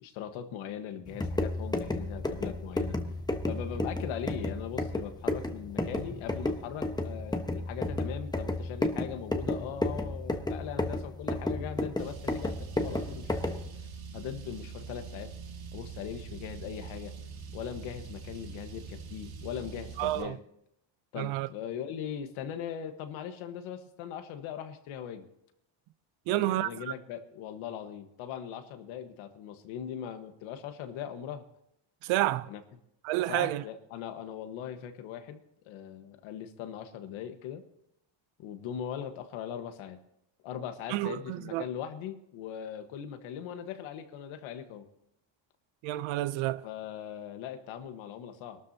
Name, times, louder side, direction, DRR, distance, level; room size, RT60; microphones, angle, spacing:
voice 1, 0.0-3.0 3.4-13.6 14.1-15.3 15.7-17.1 17.5-20.4 21.1-25.3 26.3-31.4 32.5-32.6 33.3-37.6 38.4-40.0 40.4-44.9 46.6-48.6, left 9 dB, 85° left, 1.5 m, -40 dB
sound 1, 1.1-13.7, left 2 dB, 10° left, 1.1 m, -32 dB
Car, 12.0-20.2, right 6 dB, 50° right, 1.8 m, -44 dB
voice 2, 20.0-20.4 21.2-21.5 26.3-26.7 32.0-32.5 33.0-33.6 40.9-41.6 45.8-46.6, right 16 dB, 85° right, 0.7 m, -29 dB
24.0 x 12.5 x 2.8 m
cardioid pair, 105°, 46 cm